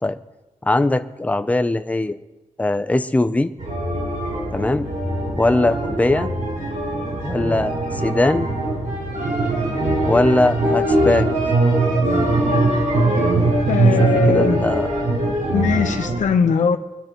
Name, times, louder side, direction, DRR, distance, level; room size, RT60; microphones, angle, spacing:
voice 1, 0.6-2.2 2.6-3.5 4.5-4.9 5.4-6.3 7.2-8.5 10.0-11.3 14.0-14.9, left 2 dB, 10° left, 10 dB, 0.5 m, -20 dB
sound 1, 3.6-16.2, right 2 dB, 75° right, 5.3 m, -21 dB
voice 2, 13.7-14.6 15.5-16.8, left 5 dB, 85° left, 6 dB, 0.9 m, -20 dB
25.0 x 10.0 x 3.0 m, 1.1 s
wide cardioid pair, 165°, 13 cm